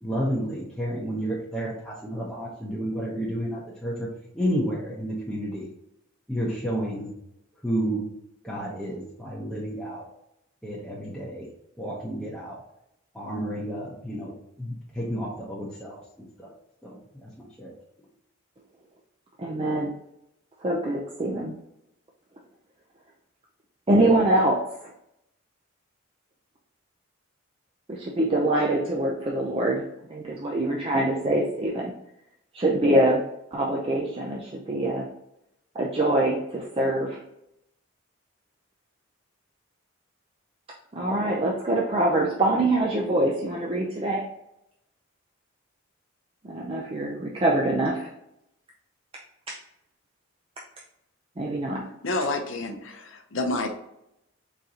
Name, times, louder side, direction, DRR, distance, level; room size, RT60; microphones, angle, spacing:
voice 1, 0.0-4.1 4.3-5.7 6.3-7.1 7.6-8.1 8.4-10.1 10.6-11.5 11.8-12.6 13.1-16.5 16.8-17.7, equal, ahead, -8 dB, 0.8 m, -31 dB
voice 2, 19.4-19.9 20.6-21.5 23.9-24.6 27.9-29.8 30.1-31.9 32.5-33.2 33.5-35.1 35.8-37.2 40.9-44.2 46.5-48.1 49.5-49.6 51.4-51.8, right 1 dB, 25° right, -2 dB, 0.5 m, -24 dB
voice 3, 52.0-53.7, left 2 dB, 60° left, 5 dB, 0.7 m, -29 dB
4.0 x 3.7 x 2.8 m, 0.81 s
head